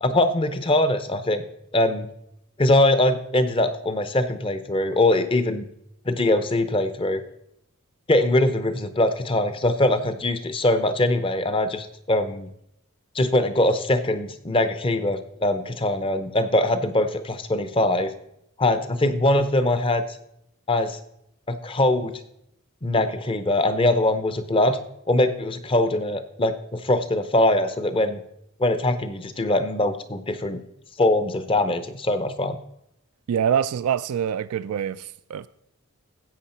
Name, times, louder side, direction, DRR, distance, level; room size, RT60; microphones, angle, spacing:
voice 1, 0.0-1.4 1.7-2.1 2.6-5.7 6.1-7.2 8.1-12.5 13.1-18.1 18.6-20.0 20.7-21.0 21.5-22.1 22.8-24.8 25.1-28.2 28.6-30.6 31.0-32.6, left 1 dB, 25° left, 0.6 m, -22 dB
voice 2, 33.3-35.5, right 8 dB, 80° right, 0.3 m, -25 dB
13.5 x 8.1 x 4.3 m
head